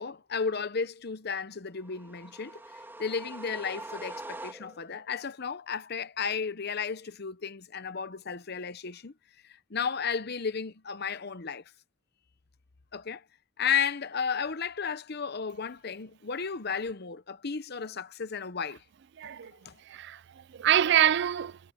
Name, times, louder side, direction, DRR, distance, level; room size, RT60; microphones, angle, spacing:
voice 1, 0.0-2.6 3.0-9.1 9.4-11.6 12.9-13.2 13.6-18.8 19.5-19.8, left 6 dB, 50° left, 0.8 m, -33 dB
sound 1, 1.8-5.0, right 2 dB, 10° right, 3.0 m, -43 dB
voice 2, 19.2-19.5 19.9-21.6, right 10 dB, 55° right, 0.4 m, -26 dB
head